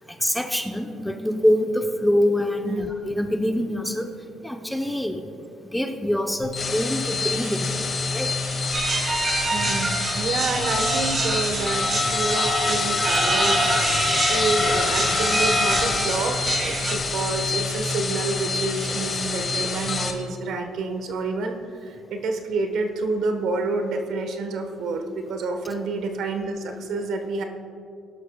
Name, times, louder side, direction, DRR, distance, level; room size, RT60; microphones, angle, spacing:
voice 1, 0.0-4.1 4.4-5.2 5.7-8.4, left 1 dB, 5° left, 4 dB, 0.9 m, -25 dB
sound 1, 6.4-20.1, left 4 dB, 35° left, 1.4 m, -26 dB
sound 2, 8.7-16.9, right 3 dB, 35° right, 1.9 m, -27 dB
voice 2, 9.5-27.4, right 3 dB, 70° right, 5 dB, 1.3 m, -28 dB
20.5 x 11.5 x 2.4 m, 2.7 s
cardioid pair, 105°, 0 cm